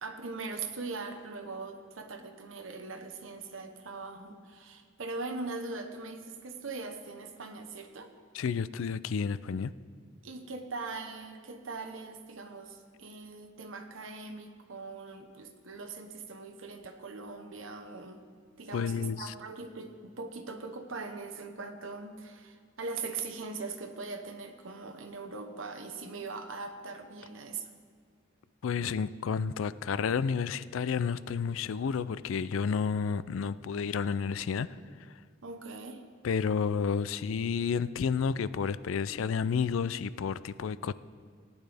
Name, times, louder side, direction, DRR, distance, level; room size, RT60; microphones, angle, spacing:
voice 1, 0.0-8.1 10.2-18.2 18.6-27.7 35.4-36.0, right 3 dB, 75° right, 1.0 m, -41 dB
voice 2, 8.3-9.7 18.7-19.3 28.6-34.7 36.2-40.9, left 6 dB, 80° left, 0.4 m, -31 dB
18.0 x 9.6 x 3.4 m
head